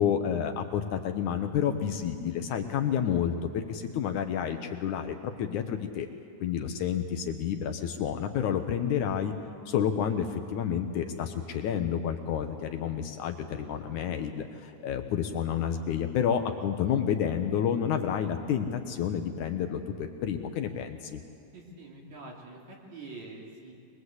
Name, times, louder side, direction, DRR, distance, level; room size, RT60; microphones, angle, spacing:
voice 1, 0.0-6.1 6.4-9.3 9.7-21.2, left 8 dB, 70° left, 6 dB, 2.2 m, -30 dB
voice 2, 21.5-23.7, right 3 dB, 55° right, -2 dB, 4.4 m, -45 dB
23.0 x 21.5 x 8.1 m, 2.4 s
omnidirectional pair, 3.9 m